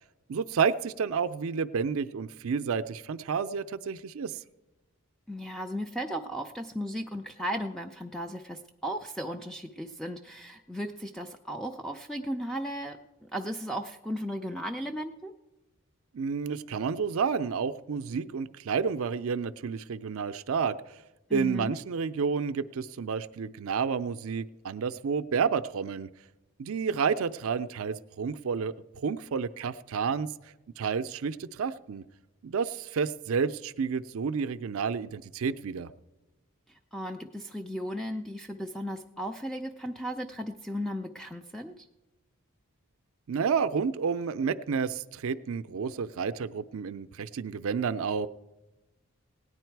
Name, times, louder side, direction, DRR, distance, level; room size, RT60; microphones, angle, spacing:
voice 1, 0.3-4.4 16.1-21.0 21.3-26.1 26.6-30.3 30.8-32.0 32.4-35.9 43.3-48.3, right 6 dB, 75° right, 12 dB, 0.4 m, -30 dB
voice 2, 5.3-15.3 21.3-21.7 36.7-41.8, equal, ahead, 5 dB, 0.4 m, -36 dB
17.5 x 9.8 x 4.6 m, 1.1 s
head